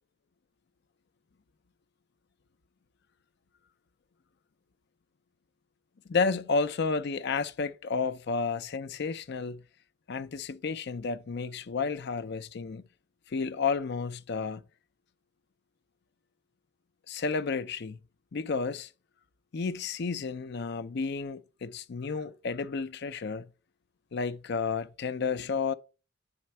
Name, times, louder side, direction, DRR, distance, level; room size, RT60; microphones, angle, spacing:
voice 1, 6.1-9.6 10.1-12.8 13.3-14.6 17.1-18.0 18.3-18.9 19.5-23.4 24.1-25.7, left 4 dB, 55° left, 0.5 m, -31 dB
9.5 x 4.3 x 4.3 m
head